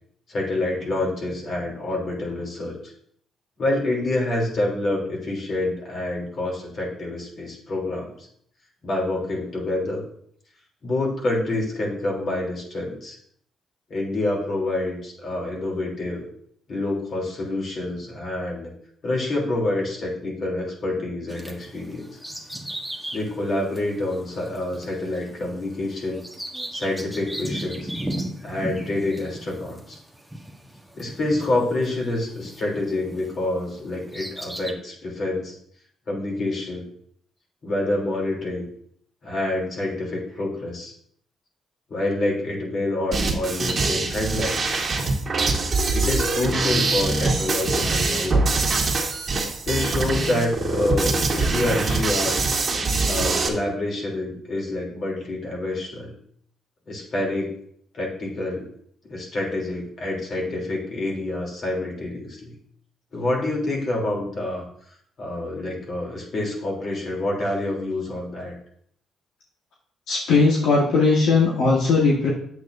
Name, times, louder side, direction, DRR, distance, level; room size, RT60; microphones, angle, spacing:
voice 1, 0.3-2.8 3.6-8.3 8.8-10.0 10.8-13.2 13.9-16.3 16.7-18.7 19.0-22.2 23.1-26.2 26.7-27.9 28.4-30.0 30.9-35.6 36.1-36.8 37.6-38.7 39.2-40.9 41.9-44.6 45.9-48.7 49.6-52.4 53.0-56.1 56.9-57.6 57.9-58.7 59.1-62.6 63.1-64.6 65.2-68.5, left 2 dB, 50° left, -1 dB, 3.0 m, -27 dB
Bird vocalization bird call bird song, 21.3-33.4 33.8-34.7, right 1 dB, ahead, 1.2 m, -36 dB
sound 1, 43.1-53.5, right 3 dB, 40° right, 1.8 m, -23 dB
voice 2, 70.1-72.3, left 4 dB, 80° left, -3 dB, 1.4 m, -18 dB
9.2 x 8.0 x 2.6 m, 0.65 s
cardioid pair, 90°, 0 cm